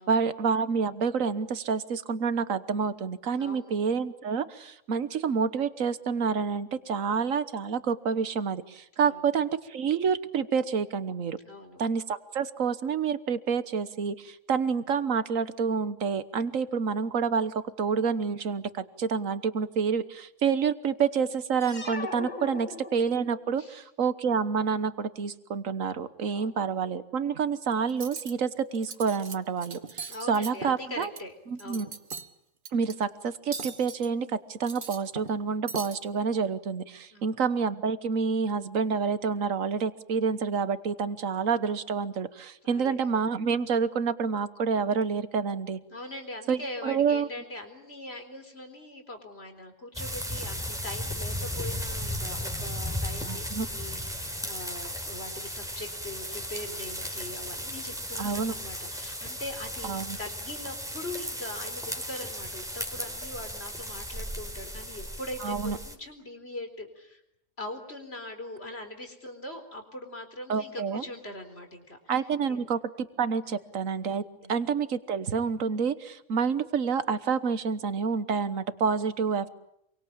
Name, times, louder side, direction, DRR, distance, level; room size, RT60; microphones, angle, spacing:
voice 1, 0.0-11.4 11.8-31.1 31.5-31.9 32.7-45.8 46.5-47.3 53.3-53.7 58.2-58.5 59.8-60.2 65.4-65.8 70.5-71.0 72.1-74.2 74.5-79.5, right 6 dB, 80° right, 13 dB, 1.6 m, -28 dB
voice 2, 3.4-3.8 9.0-9.2 11.4-11.8 22.5-22.6 23.6-23.8 26.3-26.5 30.1-31.3 31.6-31.9 37.1-37.3 42.6-42.9 45.9-67.2 67.6-72.0 72.5-72.7 74.3-74.5, left 1 dB, 50° left, 6 dB, 4.4 m, -41 dB
sound 1, 21.6-23.5, left 3 dB, 35° left, 1.7 m, -39 dB
Cutlery silverware, 27.9-28.3 28.7-29.3 29.6-31.2 31.6-32.3 32.6-32.9 33.5-34.1 34.5-35.4 35.7-36.0, right 4 dB, 40° right, 1.6 m, -39 dB
sound 2, 49.9-65.9, equal, ahead, 4.0 m, -35 dB
27.5 x 24.0 x 8.7 m, 0.78 s
omnidirectional pair, 1.3 m